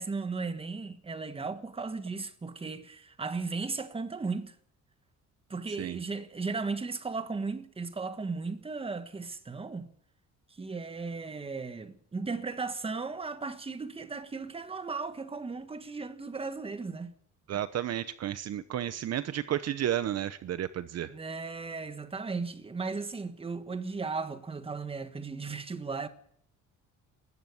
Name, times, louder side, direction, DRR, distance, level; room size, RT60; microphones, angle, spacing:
voice 1, 0.0-4.5 5.5-9.9 10.5-17.1 21.1-26.1, right 4 dB, 20° right, 1.5 m, -36 dB
voice 2, 17.5-21.1, right 11 dB, 55° right, 0.9 m, -32 dB
20.0 x 14.5 x 9.7 m
cardioid pair, 160°, 31 cm